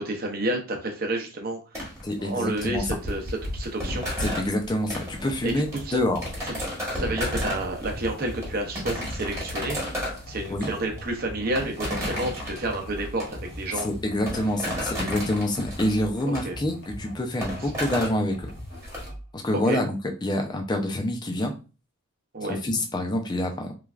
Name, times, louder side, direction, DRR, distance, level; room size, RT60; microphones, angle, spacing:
voice 1, 0.0-1.9 2.2-4.1 5.4-6.0 6.5-6.6 6.9-9.8 10.3-13.9 16.2-16.6 19.6-19.8 22.3-22.6, right 1 dB, 45° right, 2 dB, 0.6 m, -30 dB
sound 1, 1.7-19.1, equal, 15° right, 1.0 m, -34 dB
voice 2, 2.0-2.8 4.2-6.2 10.5-10.7 13.8-18.5 19.3-20.0 20.2-21.5 22.5-23.7, left 1 dB, 20° left, 4 dB, 0.4 m, -27 dB
sound 2, 7.3-17.2 17.6-19.3, equal, 60° left, 0.9 m, -41 dB
3.1 x 2.3 x 2.3 m, 0.33 s
head